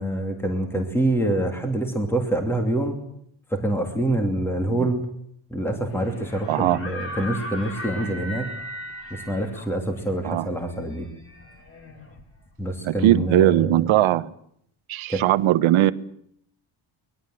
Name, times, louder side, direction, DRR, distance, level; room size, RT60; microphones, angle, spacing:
voice 1, 0.0-3.0 3.5-5.0 5.5-8.5 9.1-11.1 12.6-13.8 15.1-15.2, right 1 dB, 5° left, 3 dB, 2.7 m, -26 dB
sound 1, 5.9-12.7, left 1 dB, 25° left, 4.2 m, -38 dB
voice 2, 6.5-6.8 10.2-10.5 12.8-14.3 14.9-15.9, right 14 dB, 80° right, 12 dB, 1.4 m, -19 dB
24.5 x 20.5 x 7.9 m, 0.70 s
cardioid pair, 180°, 48 cm